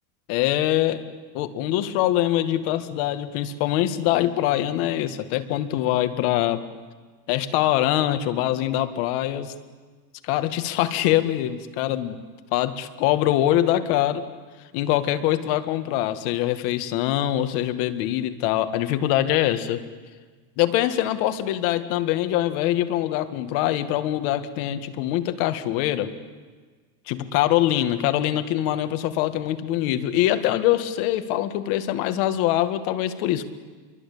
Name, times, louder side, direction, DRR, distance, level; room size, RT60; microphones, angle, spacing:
voice 1, 0.3-1.0 1.3-6.6 7.3-9.5 10.2-12.2 12.5-14.2 14.7-19.8 20.6-26.1 27.1-33.5, left 13 dB, 65° left, 10 dB, 2.0 m, -23 dB
27.0 x 23.0 x 8.6 m, 1.5 s
cardioid pair, 160°, 49 cm